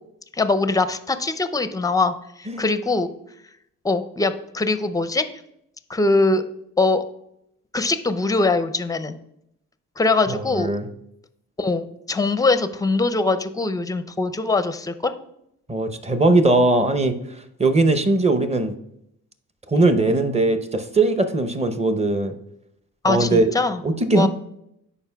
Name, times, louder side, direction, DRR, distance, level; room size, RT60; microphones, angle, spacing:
voice 1, 0.3-3.1 3.8-5.2 5.9-6.4 6.8-7.0 7.7-9.2 10.0-10.7 11.6-15.1 23.0-23.8 24.1-24.3, left 3 dB, 10° left, 12 dB, 0.5 m, -22 dB
voice 2, 10.3-10.9 15.7-17.1 17.6-18.7 19.7-22.4 23.0-23.5 23.8-24.3, right 2 dB, 15° right, 9 dB, 0.8 m, -19 dB
11.0 x 4.5 x 2.3 m, 0.78 s
supercardioid pair, 55°, 38 cm